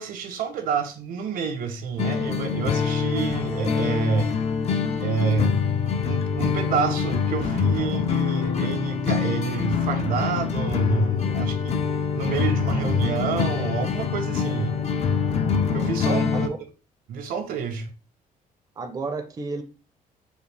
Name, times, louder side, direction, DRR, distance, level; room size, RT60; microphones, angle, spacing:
voice 1, 0.0-4.3 5.0-11.8 12.1-14.7 15.7-16.5 17.1-17.9, right 5 dB, 75° right, 0.8 m, -28 dB
sound 1, 2.0-16.5, left 6 dB, 45° left, 0.5 m, -25 dB
voice 2, 18.8-19.6, right 3 dB, 25° right, 0.5 m, -32 dB
4.9 x 2.4 x 3.2 m
cardioid pair, 135°, 15 cm